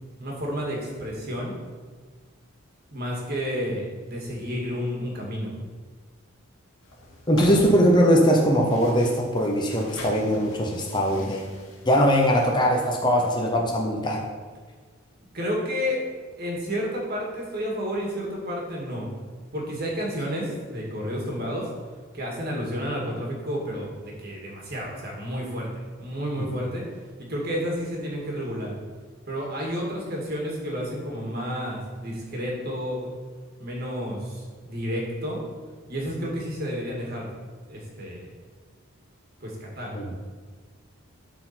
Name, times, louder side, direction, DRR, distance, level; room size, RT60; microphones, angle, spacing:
voice 1, 0.2-1.5 2.9-5.6 15.3-16.0 16.4-19.1 19.5-21.7 22.1-25.7 26.0-26.8 27.2-28.7 29.3-33.1 33.6-35.4 35.9-37.3 37.7-38.3 39.4-39.9, equal, 45° right, -2 dB, 2.0 m, -31 dB
sound 1, 6.8-12.5, left 1 dB, 70° left, 2.2 m, -41 dB
voice 2, 7.3-11.4 11.9-14.2 26.4-26.5 39.9-40.1, equal, 20° left, 0 dB, 0.8 m, -21 dB
12.0 x 4.4 x 4.3 m, 1.5 s
head